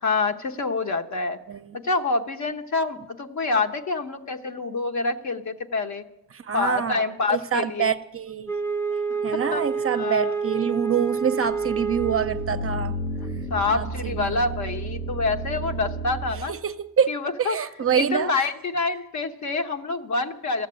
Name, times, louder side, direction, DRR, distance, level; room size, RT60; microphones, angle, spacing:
voice 1, 0.0-1.4 1.7-6.0 6.5-8.0 9.3-9.7 9.9-10.3 13.5-16.5 17.1-17.6 17.9-20.7, left 3 dB, 50° left, 1.0 m, -26 dB
voice 2, 6.3-8.5 9.2-12.9 13.7-14.4 16.5-17.1 17.4-18.5, right 8 dB, 35° right, 0.6 m, -26 dB
Wind instrument woodwind instrument, 8.4-12.7, right 5 dB, 5° left, 0.6 m, -28 dB
sound 1, 11.5-16.6, right 1 dB, 90° left, 1.2 m, -32 dB
13.5 x 7.4 x 9.6 m
cardioid pair, 95°, 37 cm